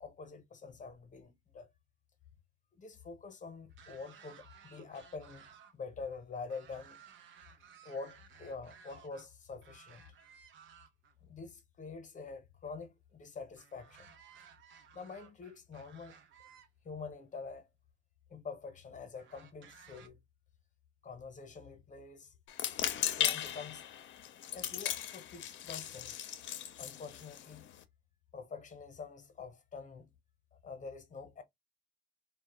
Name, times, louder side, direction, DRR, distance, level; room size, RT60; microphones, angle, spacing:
voice 1, 0.0-1.7 2.7-7.0 7.5-7.6 7.8-10.0 11.2-14.1 14.9-16.2 16.8-17.7 18.3-20.2 21.0-22.3 22.6-23.8 24.5-26.2 26.8-27.7 28.3-30.1 30.6-31.4, left 4 dB, 40° left, 0.8 m, -46 dB
sound 1, 3.7-5.7 6.0-9.3 9.6-11.1 13.5-16.7 17.6-17.7 19.2-20.1, right 7 dB, 75° right, 0.6 m, -58 dB
sound 2, 22.5-27.8, left 10 dB, 70° left, 0.5 m, -37 dB
2.3 x 2.1 x 2.9 m
cardioid pair, 90°, 20 cm